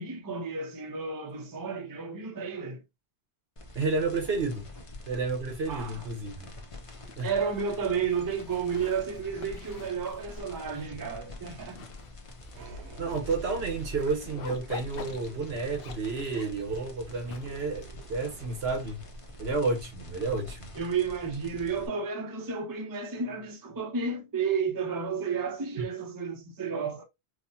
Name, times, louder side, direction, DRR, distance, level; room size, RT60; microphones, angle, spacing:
voice 1, 0.0-2.8 5.7-6.1 7.2-11.9 20.8-27.0, right 5 dB, 25° right, 0.6 m, -32 dB
sound 1, 3.6-21.9, left 2 dB, 35° left, 0.7 m, -46 dB
voice 2, 3.7-4.6 5.0-6.5 7.2-7.3 13.0-17.8 18.1-19.0 19.4-20.7 25.8-25.9, right 3 dB, 70° right, 1.3 m, -31 dB
Zipper (clothing), 6.8-19.3, left 5 dB, 65° left, 0.9 m, -48 dB
sound 2, 12.5-21.1, right 3 dB, 85° right, 0.9 m, -48 dB
4.8 x 2.1 x 2.7 m
omnidirectional pair, 1.1 m